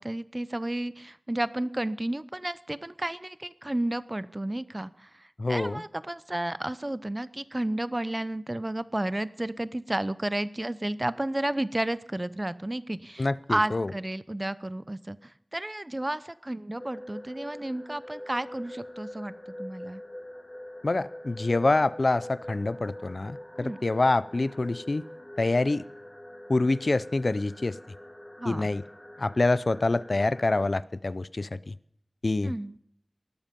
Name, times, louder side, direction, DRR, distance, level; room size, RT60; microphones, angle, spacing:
voice 1, 0.0-19.3 19.6-20.0 23.6-23.8 28.4-28.7 32.4-32.8, right 1 dB, 30° right, 16 dB, 0.8 m, -32 dB
voice 2, 5.4-5.8 13.2-13.9 20.8-25.0 25.4-25.8 26.5-27.8 28.5-28.8 29.2-31.7 32.2-32.5, left 2 dB, 70° left, 18 dB, 0.5 m, -26 dB
sound 1, 16.8-30.7, left 1 dB, 20° left, 2.0 m, -44 dB
19.0 x 13.0 x 5.3 m, 0.70 s
wide cardioid pair, 55°, 0 cm